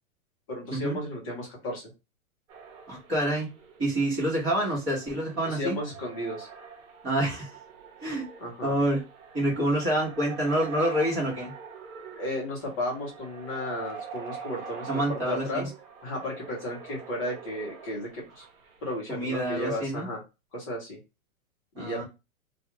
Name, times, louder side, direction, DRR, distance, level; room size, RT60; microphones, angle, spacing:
voice 1, 0.5-1.9 5.4-6.5 8.4-8.7 12.2-15.7 16.0-18.4 18.8-20.2 20.5-21.0 21.8-22.0, left 1 dB, 25° left, -3 dB, 0.8 m, -34 dB
sound 1, 2.5-18.8, right 6 dB, 65° right, 1.0 m, -45 dB
voice 2, 2.9-3.5 3.8-5.7 7.0-7.6 8.0-8.3 8.6-9.0 9.3-11.5 14.9-15.7 19.1-20.1 21.7-22.0, right 1 dB, 15° right, -7 dB, 1.0 m, -27 dB
2.4 x 2.3 x 2.8 m, 0.26 s
hypercardioid pair, 175°, 43 cm